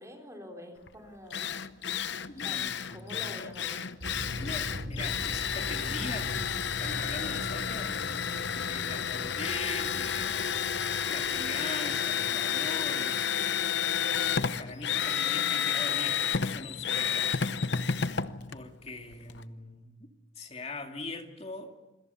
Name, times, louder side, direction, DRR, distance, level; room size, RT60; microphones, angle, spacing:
voice 1, 0.0-1.6 2.4-2.6 2.9-3.8, equal, 15° right, 3 dB, 3.7 m, -46 dB
Drill, 0.9-1.0 1.3-19.4, left 7 dB, 60° left, 0.8 m, -31 dB
voice 2, 2.3-3.4 4.1-8.0 8.6-10.7 11.1-13.3 14.2-17.4 18.5-20.0 20.4-21.7, left 3 dB, 30° left, 4 dB, 2.4 m, -42 dB
sound 1, 4.0-15.0, equal, 85° right, 4.0 m, -42 dB
27.0 x 21.5 x 7.0 m, 1.1 s
head